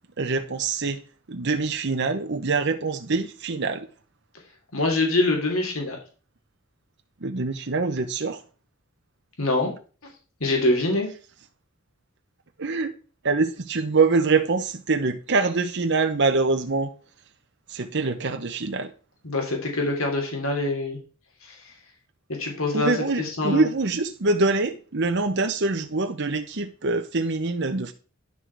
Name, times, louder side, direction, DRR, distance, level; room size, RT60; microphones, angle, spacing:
voice 1, 0.2-1.0 1.3-3.9 7.2-8.4 12.6-12.9 13.2-16.9 17.7-18.9 22.7-27.9, right 3 dB, 55° right, 0.9 m, -24 dB
voice 2, 4.7-6.0 9.4-9.7 10.4-11.1 19.2-21.0 22.4-23.6, left 2 dB, 75° left, 2.9 m, -24 dB
11.0 x 6.4 x 4.6 m
head